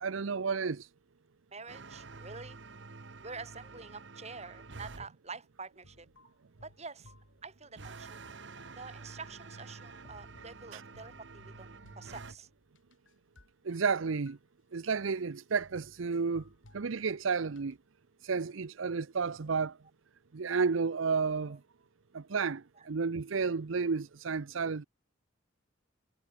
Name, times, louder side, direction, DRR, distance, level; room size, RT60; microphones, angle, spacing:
voice 1, 0.0-0.9 10.7-10.8 13.6-14.4 14.7-16.5 16.7-17.8 18.2-19.8 20.3-21.6 22.1-24.8, right 5 dB, 85° right, 0.7 m, -31 dB
voice 2, 1.5-2.6 3.2-6.1 6.6-7.1 7.4-8.2 8.8-11.7 12.0-12.5 21.5-21.6 22.8-22.9, right 4 dB, 35° right, 4.8 m, -47 dB
sound 1, 1.7-5.1 7.8-12.4, right 3 dB, 65° right, 1.1 m, -48 dB
sound 2, 5.8-7.9 8.2-13.5 13.8-14.4 14.9-15.0 15.2-15.3 15.6-17.8, left 1 dB, 75° left, 4.7 m, -61 dB
head